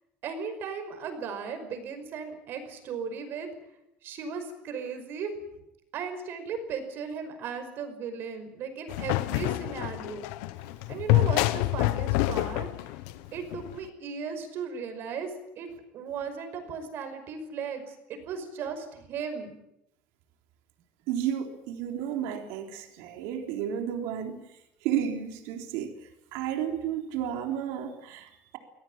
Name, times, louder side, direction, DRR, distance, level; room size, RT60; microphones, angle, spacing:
voice 1, 0.2-3.5 4.0-5.3 5.9-10.3 10.9-13.0 13.3-19.6, right 6 dB, 50° right, 8 dB, 5.5 m, -36 dB
sound 1, 8.9-13.8, left 18 dB, 90° left, 1.1 m, -27 dB
voice 2, 21.1-24.4 24.8-26.0 26.3-28.6, right 9 dB, 80° right, 4 dB, 3.6 m, -32 dB
25.0 x 17.5 x 8.9 m, 0.85 s
cardioid pair, 145°, 5 cm